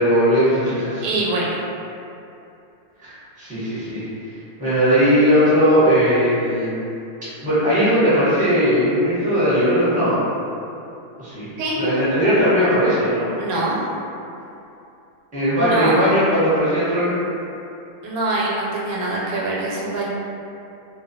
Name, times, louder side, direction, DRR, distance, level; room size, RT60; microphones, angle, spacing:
voice 1, 0.0-1.1 3.0-4.1 4.6-6.8 7.4-10.2 11.2-11.5 11.7-13.3 15.3-17.1, equal, 5° right, -13 dB, 0.7 m, -18 dB
voice 2, 1.0-1.6 11.6-11.8 13.4-13.9 15.5-16.0 18.0-20.1, right 2 dB, 90° right, -5 dB, 1.1 m, -24 dB
2.4 x 2.2 x 2.6 m, 2.7 s
omnidirectional pair, 1.5 m